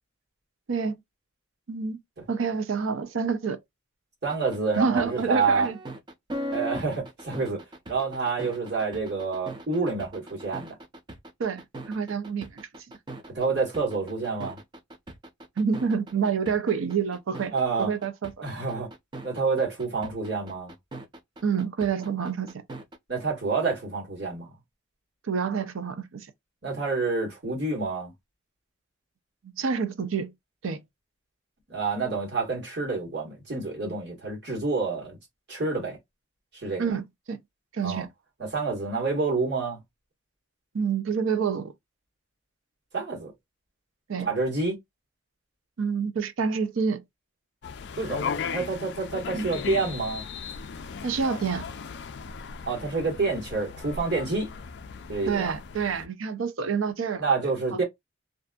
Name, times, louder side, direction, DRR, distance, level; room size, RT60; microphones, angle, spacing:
voice 1, 1.7-2.0 2.3-3.6 4.8-5.8 11.4-12.6 15.6-18.5 21.4-22.6 25.2-26.3 29.6-30.3 30.6-30.8 36.8-37.4 37.7-38.1 40.7-41.7 44.1-44.3 45.8-47.0 49.3-49.5 51.0-51.7 55.3-57.3, right 5 dB, 85° right, 0.5 m, -28 dB
voice 2, 4.2-5.7 6.5-7.6 7.9-10.7 13.3-14.6 17.5-17.9 18.4-18.9 19.2-20.7 23.1-24.5 26.6-28.1 31.7-35.2 35.5-36.0 36.5-36.9 37.8-38.0 38.4-39.8 42.9-43.3 44.2-44.7 48.0-50.2 52.7-54.5 55.1-55.5 57.2-57.8, right 4 dB, 55° right, 1.4 m, -28 dB
sound 1, 4.3-23.0, right 1 dB, 20° right, 0.4 m, -39 dB
sound 2, 47.6-56.1, left 6 dB, 55° left, 0.3 m, -37 dB
2.6 x 2.5 x 2.3 m
head